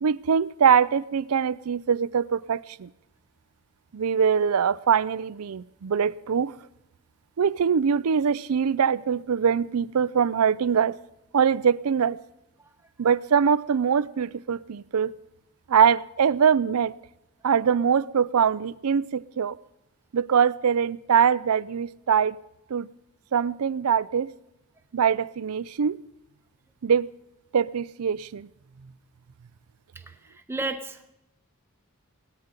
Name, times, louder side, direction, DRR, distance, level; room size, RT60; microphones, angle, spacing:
voice 1, 0.0-2.9 3.9-6.5 7.4-11.0 11.3-12.2 13.0-15.1 15.7-16.9 17.4-19.6 20.1-22.4 22.7-22.9 23.3-24.3 24.9-26.0 26.8-27.1 27.5-28.5, right 7 dB, 85° right, 0.5 m, -23 dB
voice 2, 30.5-31.1, right 2 dB, 10° right, 0.9 m, -32 dB
18.0 x 13.5 x 5.2 m
head